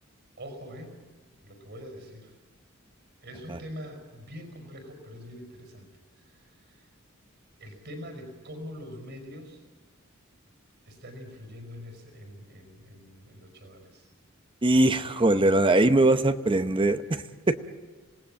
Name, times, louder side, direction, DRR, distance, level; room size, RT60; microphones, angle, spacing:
voice 1, 0.4-1.0 1.4-2.3 3.2-5.9 6.2-6.9 7.6-9.6 10.9-14.1, equal, 55° right, 6 dB, 5.2 m, -44 dB
voice 2, 14.6-17.6, right 2 dB, 25° right, 10 dB, 0.8 m, -22 dB
27.0 x 19.0 x 8.9 m, 1.3 s
head